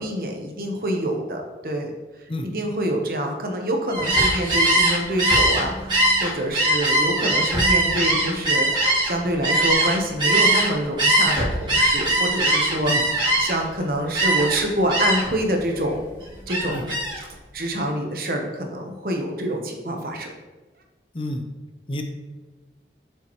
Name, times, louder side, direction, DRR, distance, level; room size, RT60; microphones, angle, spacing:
voice 1, 0.0-1.9 2.4-12.9 13.4-16.0 16.5-16.9 17.5-20.3, right 1 dB, 55° right, 2 dB, 1.1 m, -26 dB
Gull seagull, 3.9-10.7 11.0-13.7 14.1-14.6 14.9-15.4 15.7-17.2, right 1 dB, 25° right, 2.0 m, -21 dB
voice 2, 21.1-21.5 21.9-22.0, left 1 dB, 30° left, 5 dB, 0.6 m, -29 dB
7.3 x 6.9 x 3.2 m, 1.2 s
head